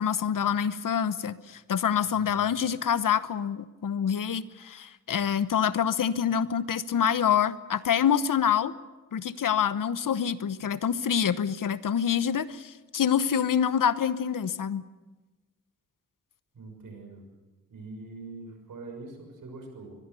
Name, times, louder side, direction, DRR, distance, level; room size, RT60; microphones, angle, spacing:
voice 1, 0.0-8.7 9.1-14.8, left 8 dB, 85° left, 14 dB, 1.0 m, -26 dB
voice 2, 2.1-2.6 16.5-17.2 17.7-20.0, right 3 dB, 85° right, 4 dB, 6.5 m, -44 dB
24.0 x 21.5 x 7.0 m, 1.2 s
cardioid pair, 65°, 32 cm